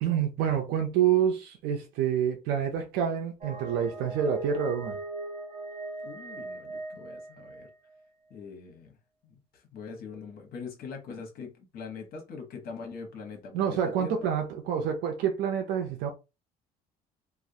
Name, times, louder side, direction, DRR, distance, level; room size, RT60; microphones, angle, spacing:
voice 1, 0.0-5.0 13.5-16.1, right 8 dB, 85° right, 0.5 m, -27 dB
sound 1, 3.4-8.1, right 2 dB, 40° right, 0.9 m, -39 dB
voice 2, 6.0-7.7 8.3-9.0 9.2-14.3, left 5 dB, 65° left, 0.9 m, -43 dB
2.3 x 2.0 x 2.7 m
cardioid pair, 110°, 17 cm